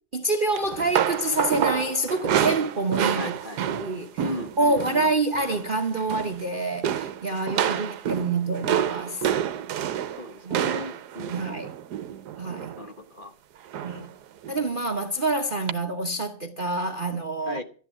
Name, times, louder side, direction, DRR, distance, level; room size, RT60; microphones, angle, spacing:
voice 1, 0.1-3.3 3.6-4.2 4.6-9.3 10.4-10.8 11.3-11.7 12.4-12.7 13.8-14.1 14.5-17.6, right 2 dB, 35° right, 0.9 m, -27 dB
sound 1, 0.5-5.1 5.3-5.7 6.0-6.5 6.8-12.9 13.7-14.1 14.4-14.6 15.7-15.8, right 9 dB, 65° right, 1.3 m, -28 dB
voice 2, 3.2-3.6 4.2-5.1 7.6-7.9 10.1-11.7 12.8-13.3 17.4-17.6, left 1 dB, 35° left, 1.1 m, -36 dB
12.5 x 10.5 x 7.4 m
omnidirectional pair, 1.9 m